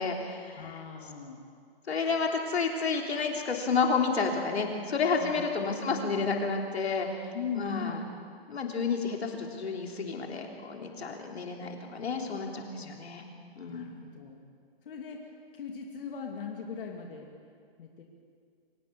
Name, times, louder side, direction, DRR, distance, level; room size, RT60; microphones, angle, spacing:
voice 1, 0.0-0.8 1.9-7.3 7.5-8.0 8.5-13.2 13.6-14.0, left 4 dB, 85° left, 2 dB, 3.5 m, -30 dB
voice 2, 0.6-1.4 5.2-5.5 7.3-8.2 12.7-12.9 13.7-14.4 14.8-15.2 15.5-17.3 17.8-18.0, left 6 dB, 60° left, 1 dB, 2.7 m, -39 dB
24.5 x 17.0 x 7.0 m, 2.2 s
hypercardioid pair, 150°, 31 cm